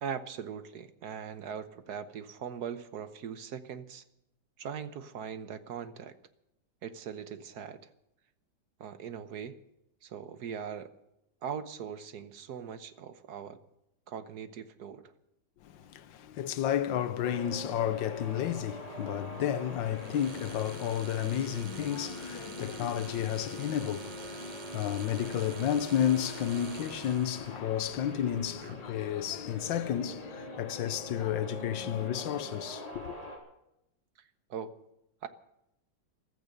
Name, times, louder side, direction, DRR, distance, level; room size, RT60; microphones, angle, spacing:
voice 1, 0.0-4.0 4.6-6.2 6.8-7.8 8.8-9.6 10.0-10.9 11.4-13.6 14.1-15.1 28.6-28.7 34.2-34.8 35.2-35.3, right 7 dB, 65° right, 1.4 m, -40 dB
voice 2, 15.6-33.3, left 10 dB, 85° left, 1.6 m, -32 dB
sound 1, 17.2-33.4, left 2 dB, 20° left, 3.4 m, -45 dB
sound 2, 19.9-27.4, right 2 dB, 40° right, 0.6 m, -45 dB
15.0 x 13.5 x 6.6 m
omnidirectional pair, 2.0 m